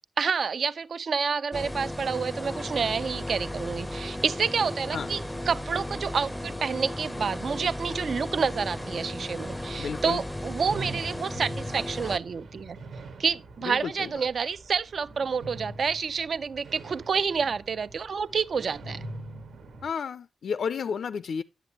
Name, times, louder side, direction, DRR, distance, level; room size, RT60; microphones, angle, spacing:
voice 1, 0.2-12.8 13.2-19.0, right 5 dB, 55° right, 0.4 m, -29 dB
sound 1, 1.5-12.2, left 1 dB, 5° left, 0.5 m, -35 dB
sound 2, 3.5-19.9, right 3 dB, 85° right, 1.7 m, -45 dB
voice 2, 9.8-10.2 13.7-14.1 19.8-21.4, left 6 dB, 75° left, 0.4 m, -32 dB
10.0 x 7.8 x 3.0 m
wide cardioid pair, 160°, 0 cm